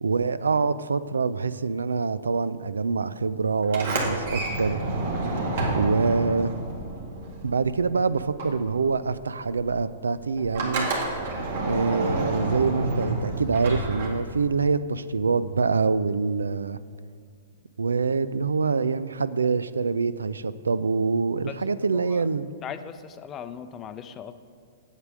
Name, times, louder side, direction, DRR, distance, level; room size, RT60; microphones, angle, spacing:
voice 1, 0.0-4.8 5.7-6.5 7.4-10.9 11.6-16.8 17.8-22.5, right 4 dB, 90° right, 15 dB, 0.3 m, -25 dB
Sliding door, 3.6-7.9 8.2-14.6, right 2 dB, 65° right, 2.0 m, -29 dB
voice 2, 21.9-22.2 22.6-24.3, left 8 dB, 25° left, 10 dB, 0.5 m, -38 dB
8.2 x 7.5 x 6.1 m, 2.1 s
hypercardioid pair, 120°, 0 cm